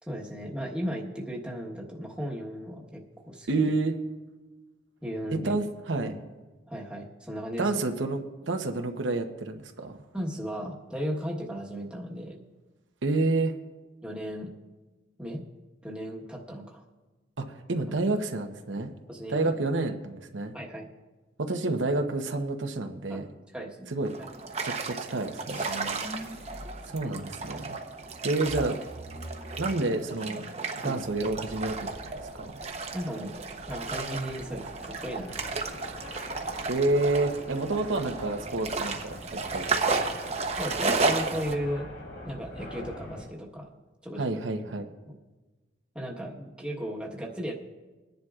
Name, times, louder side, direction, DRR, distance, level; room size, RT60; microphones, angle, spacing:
voice 1, 0.0-3.7 5.0-5.6 5.9-6.1 6.7-7.8 10.1-12.4 14.0-14.5 15.2-15.4 15.8-16.8 17.9-18.0 19.1-19.5 20.5-20.9 23.1-23.2 23.5-23.9 27.0-27.2 30.8-31.0 32.9-33.4 33.7-35.8 40.6-41.9 42.2-43.7 44.0-44.4 45.1-45.2 45.9-47.5, equal, 5° right, -3 dB, 1.3 m, -36 dB
voice 2, 3.5-3.9 5.3-6.1 7.6-10.0 13.0-13.5 17.4-18.9 19.3-20.5 21.4-23.3 23.9-24.1 24.6-26.1 26.8-27.8 28.2-28.8 29.6-30.4 30.8-31.9 32.4-32.5 36.7-39.9 44.2-44.9, right 2 dB, 85° right, 5 dB, 0.9 m, -29 dB
sound 1, 24.0-41.6, right 4 dB, 35° right, 0.8 m, -33 dB
sound 2, 25.5-27.6 28.0-30.6 30.9-31.5, right 1 dB, 45° left, 2.2 m, -43 dB
sound 3, 31.0-43.2, left 1 dB, 80° left, 4.6 m, -45 dB
21.5 x 10.5 x 2.4 m, 1.2 s
head